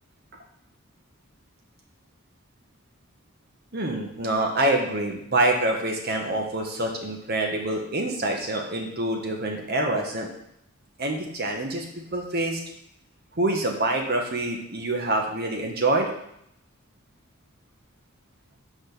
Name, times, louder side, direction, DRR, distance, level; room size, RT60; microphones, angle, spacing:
voice 1, 3.7-10.3 11.0-12.6 13.4-16.1, right 2 dB, 50° right, 2 dB, 1.4 m, -26 dB
6.2 x 5.1 x 6.8 m, 0.75 s
head